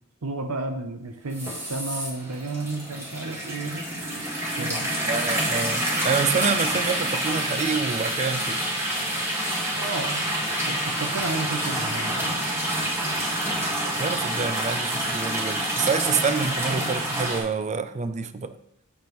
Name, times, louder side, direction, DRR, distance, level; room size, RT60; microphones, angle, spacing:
voice 1, 0.2-3.9 4.6-4.9 9.8-10.3 10.7-12.4, right 2 dB, 75° right, 5 dB, 0.7 m, -32 dB
sound 1, 1.3-17.4, right 1 dB, 15° right, 1.7 m, -27 dB
voice 2, 5.1-8.6 14.0-18.5, right 5 dB, 35° right, 12 dB, 0.4 m, -27 dB
8.0 x 6.8 x 3.1 m, 0.76 s
head